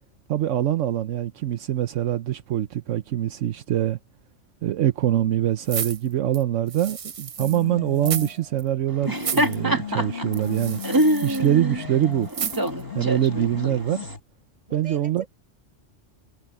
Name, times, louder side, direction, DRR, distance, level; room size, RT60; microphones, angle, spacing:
voice 1, 0.3-4.0 4.6-10.8 11.2-12.3 12.9-14.0 14.7-15.2, right 12 dB, 75° right, 1.1 m, -24 dB
sound 1, 5.6-7.6 8.0-8.3 8.6-8.7 9.1-9.6 10.3-11.5 12.3-12.8 13.3-13.4, right 7 dB, 50° right, 0.4 m, -32 dB
sound 2, 7.4-8.5 9.0-14.2, left 9 dB, 50° left, 1.3 m, -36 dB
Laughter, 8.9-14.2, right 1 dB, 15° right, 1.5 m, -26 dB
voice 2, 14.7-15.3, right 1 dB, 35° right, 6.8 m, -42 dB
omnidirectional pair, 1.3 m